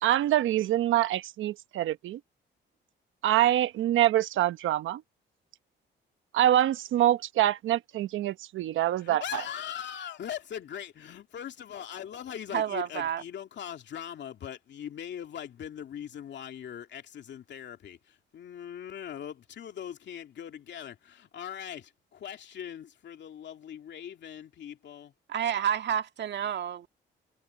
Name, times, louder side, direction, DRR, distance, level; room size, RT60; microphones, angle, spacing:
voice 1, 0.0-2.2 3.2-5.0 6.3-9.4, right 13 dB, 80° right, 1.0 m, -25 dB
voice 2, 9.0-25.1, left 9 dB, 65° left, 2.6 m, -40 dB
voice 3, 12.5-13.2 25.3-26.9, right 9 dB, 60° right, 1.8 m, -29 dB
cardioid pair, 90°, 20 cm